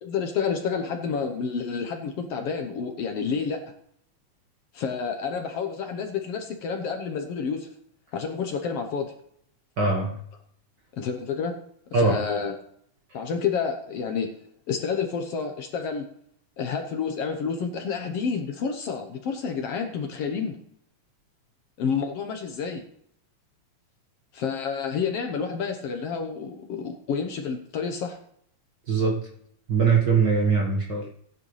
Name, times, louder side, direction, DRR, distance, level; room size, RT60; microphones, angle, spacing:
voice 1, 0.0-3.6 4.7-7.7 8.1-9.1 10.9-11.6 12.0-12.6 13.1-14.3 14.7-16.1 16.6-20.6 21.8-22.8 24.3-28.2, left 6 dB, 65° left, 5 dB, 1.8 m, -29 dB
voice 2, 9.8-10.1 11.9-12.2 28.9-29.2 29.7-31.1, right 5 dB, 45° right, 0 dB, 1.6 m, -21 dB
16.5 x 9.7 x 3.2 m, 0.69 s
omnidirectional pair, 3.4 m